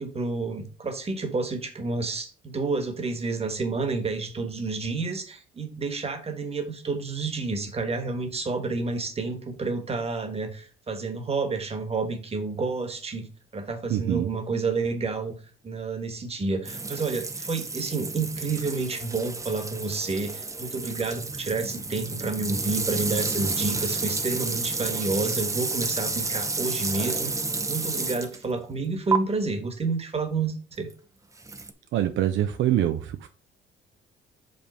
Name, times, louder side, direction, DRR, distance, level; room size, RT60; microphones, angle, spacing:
voice 1, 0.0-13.3 13.5-15.3 15.6-27.3 27.7-30.9, right 3 dB, 30° right, 1.3 m, -29 dB
voice 2, 13.9-14.3 31.9-33.3, right 12 dB, 75° right, 0.5 m, -24 dB
sound 1, 16.6-28.4 29.1-29.2 31.4-31.7, right 3 dB, 15° right, 0.6 m, -30 dB
5.2 x 3.4 x 5.4 m
cardioid pair, 90°, 20 cm